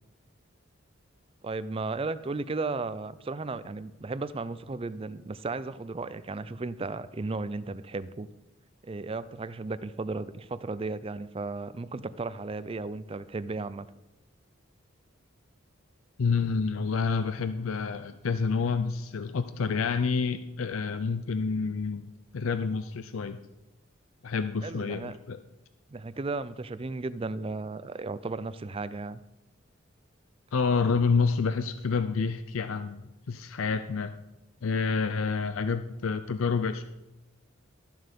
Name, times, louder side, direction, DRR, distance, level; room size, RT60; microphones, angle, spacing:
voice 1, 1.4-8.3 8.8-13.9 24.6-25.2 25.9-29.2 35.2-35.3, right 3 dB, 25° right, 15 dB, 0.4 m, -35 dB
voice 2, 16.2-22.1 22.3-23.4 24.2-25.4 30.5-34.2 34.6-36.9, left 5 dB, 85° left, 10 dB, 0.5 m, -28 dB
12.5 x 7.5 x 5.3 m, 0.96 s
head